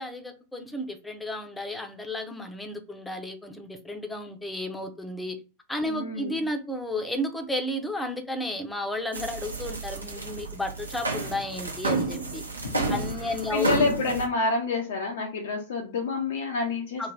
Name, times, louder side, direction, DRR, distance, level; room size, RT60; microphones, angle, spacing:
voice 1, 0.0-5.4 5.7-12.4 12.9-13.7 17.0-17.1, left 1 dB, 5° left, 0.7 m, -33 dB
voice 2, 5.9-6.4 12.6-17.1, left 4 dB, 60° left, 0.6 m, -29 dB
sound 1, 9.1-14.2, right 3 dB, 80° right, 0.8 m, -31 dB
3.2 x 2.5 x 3.9 m
figure-of-eight pair, 90°, 0 cm